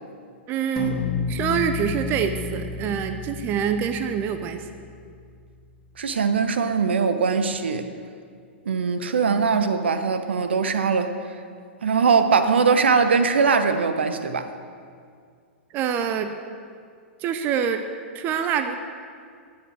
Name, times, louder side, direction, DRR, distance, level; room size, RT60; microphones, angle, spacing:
voice 1, 0.5-0.9 1.3-4.7 15.7-16.3 17.2-17.8 18.1-18.7, right 8 dB, 30° right, 8 dB, 0.8 m, -25 dB
sound 1, 0.8-5.4, left 4 dB, 15° left, 2.5 m, -31 dB
voice 2, 6.0-7.9 8.7-11.1 11.8-14.5, right 5 dB, 65° right, 9 dB, 0.9 m, -21 dB
19.0 x 7.4 x 6.4 m, 2.2 s
figure-of-eight pair, 100°, 6 cm